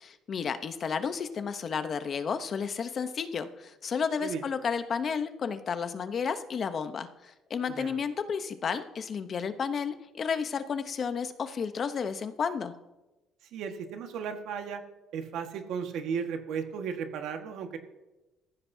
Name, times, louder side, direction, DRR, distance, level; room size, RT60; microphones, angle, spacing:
voice 1, 0.0-12.7, left 6 dB, 45° left, 10 dB, 0.8 m, -32 dB
voice 2, 13.5-14.8 15.1-17.8, right 6 dB, 75° right, 5 dB, 1.6 m, -35 dB
18.5 x 14.5 x 2.8 m, 1.1 s
cardioid pair, 120°, 0 cm